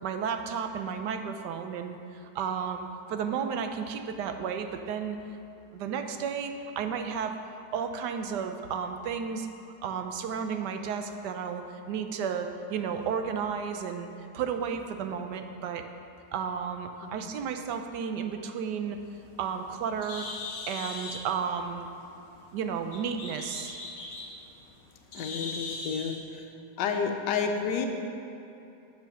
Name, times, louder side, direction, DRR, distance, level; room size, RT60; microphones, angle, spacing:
voice 1, 0.0-5.2 5.7-9.5 9.8-14.1 14.3-15.9 16.3-19.0 19.4-20.3 20.7-21.9 22.5-23.8, right 6 dB, 80° right, 6 dB, 1.2 m, -33 dB
Bird, 19.0-26.2, left 3 dB, 55° left, 1.5 m, -41 dB
voice 2, 25.1-26.5 26.8-27.9, left 6 dB, 80° left, 4 dB, 1.4 m, -30 dB
7.6 x 7.3 x 5.9 m, 2.8 s
omnidirectional pair, 1.8 m